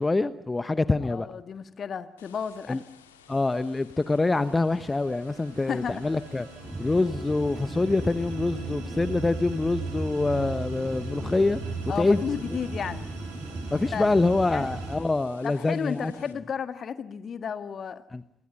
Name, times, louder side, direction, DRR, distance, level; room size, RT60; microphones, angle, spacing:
voice 1, 0.0-1.3 2.7-2.8 3.3-6.5 6.8-11.6 12.0-12.2 12.5-12.6 13.7-16.1 18.1-18.2, left 3 dB, 20° left, 13 dB, 1.1 m, -25 dB
voice 2, 1.0-2.8 5.7-6.0 11.9-13.1 13.9-14.0 14.5-14.7 15.4-18.0, left 7 dB, 50° left, 10 dB, 1.8 m, -32 dB
sound 1, 2.2-16.3, left 8 dB, 85° left, 2.1 m, -56 dB
sound 2, 4.0-15.0, right 5 dB, 70° right, 4.9 m, -40 dB
sound 3, 6.6-15.1, right 2 dB, 15° right, 1.8 m, -37 dB
30.0 x 25.0 x 5.5 m, 0.70 s
figure-of-eight pair, 45°, 0 cm